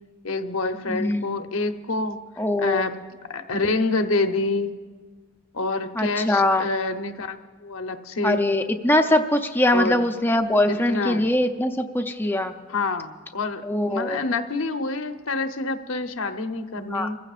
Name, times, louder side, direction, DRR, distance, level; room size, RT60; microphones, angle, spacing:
voice 1, 0.2-2.2 2.6-2.9 3.3-4.8 5.5-8.4 9.7-10.1 10.7-11.3 12.7-17.2, left 3 dB, 85° left, 7 dB, 0.9 m, -27 dB
voice 2, 0.9-1.4 2.4-2.9 6.0-6.7 8.2-12.5 13.6-14.2 16.8-17.1, left 1 dB, 10° left, 5 dB, 0.6 m, -22 dB
26.5 x 15.0 x 2.5 m, 1.5 s
head